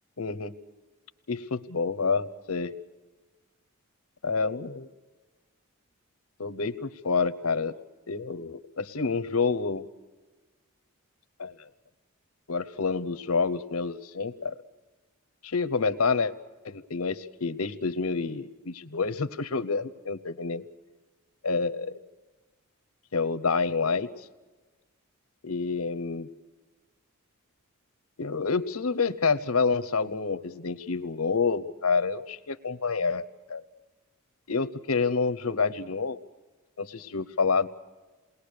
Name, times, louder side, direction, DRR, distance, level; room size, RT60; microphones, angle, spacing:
voice 1, 0.2-0.5 1.3-2.7 4.2-4.9 6.4-7.7 8.1-9.8 11.4-11.5 12.5-14.5 15.4-16.3 16.6-20.6 21.4-22.0 23.1-24.1 25.4-26.3 28.2-33.6 34.5-36.2 36.8-37.7, left 4 dB, 85° left, 14 dB, 1.0 m, -28 dB
28.0 x 20.5 x 6.7 m, 1.3 s
head